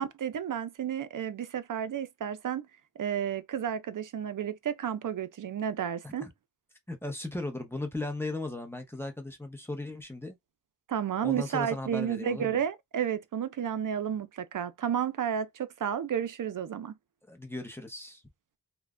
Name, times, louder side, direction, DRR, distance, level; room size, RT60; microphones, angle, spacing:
voice 1, 0.0-2.7 3.0-6.3 10.9-16.9, right 8 dB, 55° right, 0.5 m, -32 dB
voice 2, 6.9-10.4 11.2-12.6 17.2-18.2, left 2 dB, 5° left, 0.8 m, -37 dB
3.1 x 2.2 x 2.4 m
wide cardioid pair, 100°, 39 cm